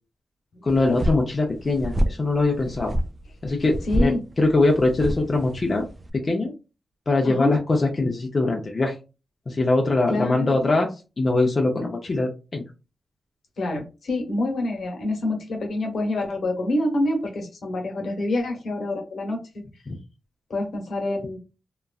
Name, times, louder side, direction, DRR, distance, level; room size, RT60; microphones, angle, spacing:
voice 1, 0.6-3.0 3.4-5.9 6.1-6.5 7.1-9.0 9.5-12.6 19.9-20.0, left 2 dB, 35° left, 1 dB, 0.6 m, -22 dB
sound 1, 0.7-6.1, equal, 25° right, 0.3 m, -28 dB
voice 2, 3.9-4.2 7.2-7.5 10.1-10.7 13.6-19.4 20.5-21.4, left 1 dB, 75° left, 2 dB, 1.1 m, -26 dB
3.0 x 2.4 x 2.4 m, 0.29 s
wide cardioid pair, 115°, 0 cm